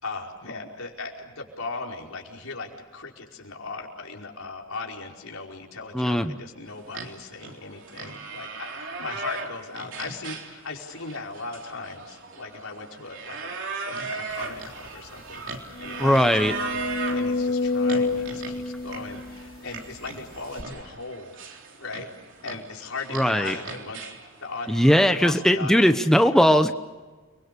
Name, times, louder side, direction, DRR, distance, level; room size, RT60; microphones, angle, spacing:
voice 1, 0.0-21.4 21.8-22.1 22.4-25.9 26.2-26.5, left 3 dB, 85° left, 0 dB, 5.1 m, -38 dB
voice 2, 5.9-6.4 16.0-16.5 23.1-23.5 24.7-26.7, equal, ahead, 8 dB, 0.8 m, -19 dB
sound 1, 6.8-25.1, right 4 dB, 60° right, 3.6 m, -38 dB
sound 2, 14.6-14.7 15.0-15.1 15.7-19.9 20.6-20.7, left 3 dB, 45° left, 2.3 m, -28 dB
30.0 x 22.5 x 6.9 m, 1.3 s
head